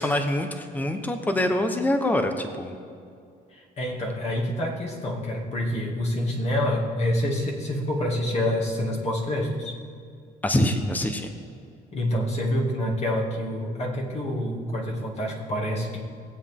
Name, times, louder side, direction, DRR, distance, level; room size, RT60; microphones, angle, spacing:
voice 1, 0.0-2.7 10.4-11.3, left 1 dB, 10° left, 6 dB, 0.9 m, -25 dB
voice 2, 3.5-9.8 11.9-16.0, left 1 dB, 40° left, -1 dB, 2.4 m, -27 dB
20.0 x 8.1 x 3.7 m, 2.4 s
cardioid pair, 110°, 17 cm